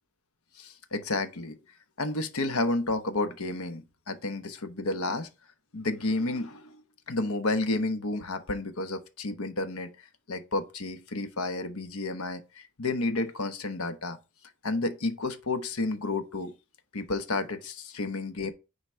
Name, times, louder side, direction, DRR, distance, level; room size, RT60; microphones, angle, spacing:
voice 1, 0.6-1.6 2.0-5.3 5.7-6.8 7.1-9.9 10.3-14.2 14.6-16.5 16.9-18.5, left 2 dB, 85° left, 1.1 m, -31 dB
9.8 x 4.0 x 4.5 m
head